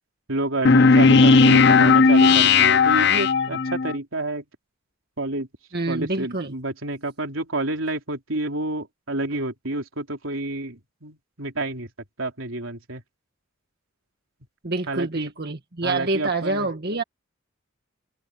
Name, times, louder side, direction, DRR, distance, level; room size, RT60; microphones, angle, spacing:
voice 1, 0.3-4.4 5.2-5.5 5.9-11.9 12.2-13.0 14.9-15.3 15.8-16.7, right 2 dB, 80° right, 3.7 m, -29 dB
sound 1, 0.6-3.9, left 4 dB, 55° left, 0.8 m, -15 dB
voice 2, 5.7-6.5 14.6-17.0, right 2 dB, 50° right, 1.8 m, -27 dB
head